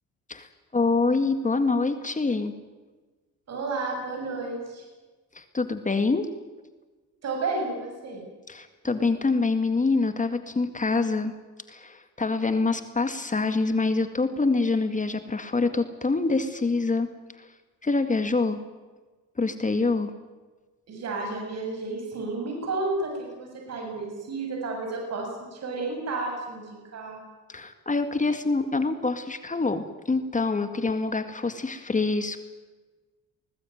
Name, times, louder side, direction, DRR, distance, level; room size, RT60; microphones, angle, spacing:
voice 1, 0.7-2.5 5.3-6.3 8.5-11.3 11.7-17.1 17.4-17.5 17.8-18.6 19.4-20.1 27.5-32.4, left 3 dB, 25° left, 8 dB, 2.0 m, -25 dB
voice 2, 3.5-4.8 7.2-8.2 20.9-27.2, right 3 dB, 60° right, 1 dB, 7.5 m, -32 dB
21.5 x 19.0 x 9.4 m, 1.3 s
cardioid pair, 90°, 30 cm